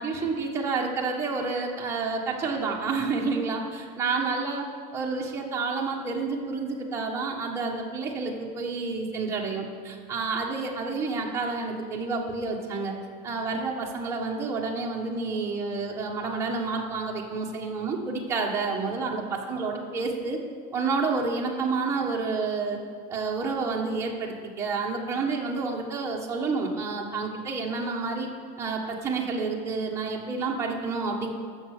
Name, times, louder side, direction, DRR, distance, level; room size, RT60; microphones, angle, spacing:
voice 1, 0.0-4.6 4.9-12.9 13.2-20.4 20.7-22.8 23.1-28.3 28.6-31.3, right 4 dB, 15° right, -2 dB, 1.3 m, -29 dB
14.0 x 6.5 x 6.6 m, 2.1 s
cardioid pair, 170°, 21 cm